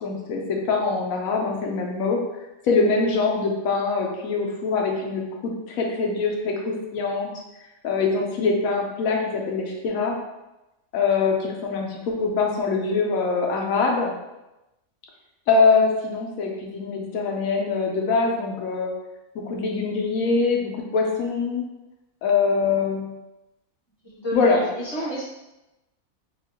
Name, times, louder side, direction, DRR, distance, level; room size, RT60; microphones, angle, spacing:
voice 1, 0.0-2.2 2.6-7.3 7.8-10.2 10.9-14.1 15.5-18.9 19.3-21.6 22.2-23.1 24.3-24.6, left 4 dB, 80° left, 0 dB, 1.1 m, -23 dB
voice 2, 24.0-25.2, right 1 dB, 20° left, -8 dB, 0.9 m, -31 dB
4.4 x 2.4 x 2.8 m, 0.97 s
omnidirectional pair, 1.4 m